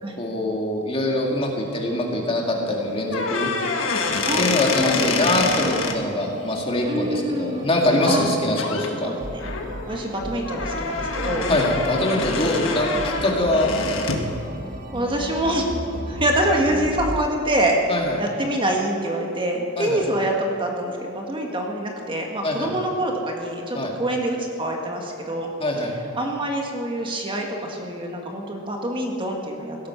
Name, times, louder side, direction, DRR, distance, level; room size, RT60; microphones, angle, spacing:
voice 1, 0.2-3.5 4.4-9.1 11.5-14.3 17.9-18.2 19.8-20.0 22.4-22.7 23.7-23.9 25.6-25.9, left 1 dB, 30° left, 0 dB, 2.3 m, -23 dB
sound 1, 1.2-17.2, right 1 dB, 45° right, 1.4 m, -37 dB
sound 2, 3.0-6.0 8.1-8.3 8.6-8.9 9.4-14.3, left 4 dB, 80° left, 1.7 m, -26 dB
voice 2, 4.2-5.1 6.9-7.7 8.1-8.3 9.0-9.4 9.9-11.5 14.9-15.7 16.1-17.8 18.2-25.5 26.1-29.8, right 1 dB, 25° right, 1 dB, 1.7 m, -25 dB
17.0 x 13.0 x 5.8 m, 2.9 s
head